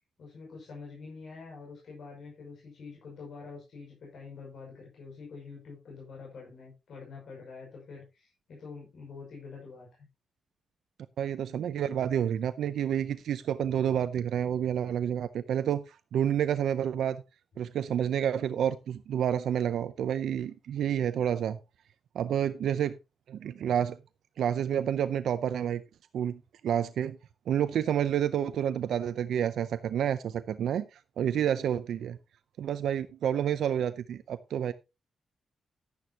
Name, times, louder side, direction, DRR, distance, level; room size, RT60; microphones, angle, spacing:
voice 1, 0.2-10.0, left 4 dB, 65° left, 5.6 m, -46 dB
voice 2, 11.2-17.2 17.6-21.6 22.1-23.0 23.3-24.0 24.4-25.8 26.1-27.2 27.5-32.2 32.6-34.7, right 9 dB, 85° right, 0.6 m, -29 dB
11.0 x 11.0 x 2.8 m
wide cardioid pair, 140°, 0 cm